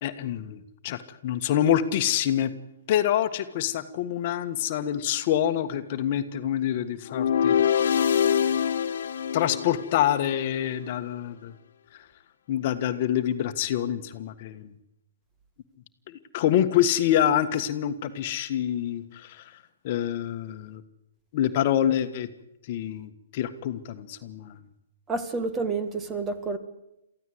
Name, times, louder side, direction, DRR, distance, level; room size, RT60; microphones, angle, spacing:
voice 1, 0.0-2.5 2.9-7.6 9.3-11.5 12.5-14.7 16.1-19.4 19.8-20.8 21.3-22.3 22.7-24.6, left 11 dB, 45° left, 8 dB, 1.5 m, -26 dB
sound 1, 7.1-10.3, left 8 dB, 65° left, 1.5 m, -24 dB
voice 2, 25.1-26.6, right 3 dB, 15° right, 10 dB, 2.0 m, -29 dB
23.5 x 15.0 x 8.0 m, 0.85 s
hypercardioid pair, 140°, 0 cm